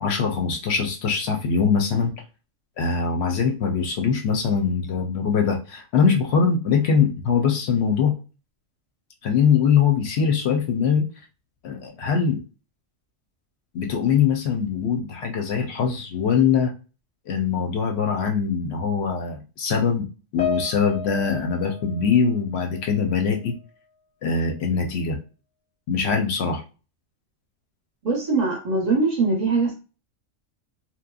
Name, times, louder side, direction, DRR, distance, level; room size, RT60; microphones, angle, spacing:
voice 1, 0.0-2.1 2.8-8.2 9.2-11.1 11.6-12.4 13.7-16.7 17.3-20.1 20.3-23.5 24.2-25.2 25.9-26.6, left 6 dB, 65° left, 0.7 m, -22 dB
Piano, 20.4-23.0 23.3-23.6 24.4-24.5, left 5 dB, 35° left, 0.5 m, -33 dB
voice 2, 28.0-29.7, right 3 dB, 40° right, 0.8 m, -22 dB
3.0 x 2.1 x 2.3 m
omnidirectional pair, 1.3 m